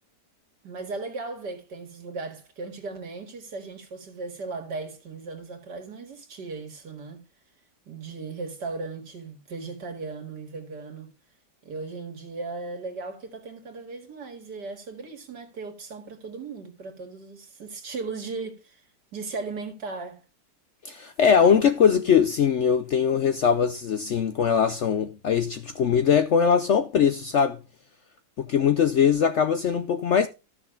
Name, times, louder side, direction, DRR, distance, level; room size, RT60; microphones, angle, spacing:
voice 1, 0.6-7.2 7.9-11.1 11.6-18.8 19.1-20.2, right 3 dB, 75° right, 2.5 m, -37 dB
voice 2, 20.8-27.6 28.4-30.3, left 7 dB, 65° left, 0.7 m, -21 dB
13.0 x 6.4 x 3.7 m
omnidirectional pair, 1.8 m